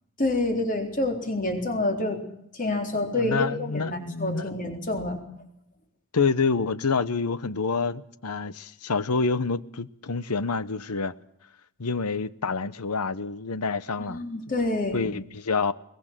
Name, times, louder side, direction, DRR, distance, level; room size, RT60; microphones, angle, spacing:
voice 1, 0.2-2.2 2.5-5.2 14.1-15.1, left 2 dB, 35° left, 3.9 m, -27 dB
voice 2, 3.1-4.6 6.1-11.1 11.8-14.2 14.9-15.7, left 4 dB, 90° left, 1.0 m, -27 dB
22.0 x 20.0 x 7.5 m
head